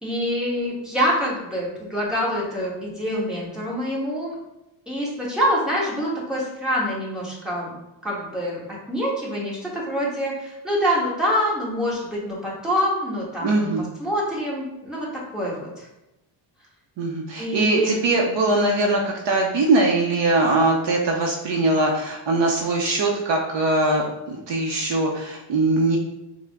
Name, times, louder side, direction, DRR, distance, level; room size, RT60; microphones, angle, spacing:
voice 1, 0.0-4.4 4.9-7.7 8.0-8.6 8.9-13.7 14.0-15.9 17.4-18.0, equal, ahead, -6 dB, 1.4 m, -25 dB
voice 2, 13.4-13.9 17.0-26.0, right 2 dB, 60° right, 0 dB, 0.7 m, -21 dB
4.6 x 2.1 x 3.4 m, 0.93 s
cardioid pair, 100°, 49 cm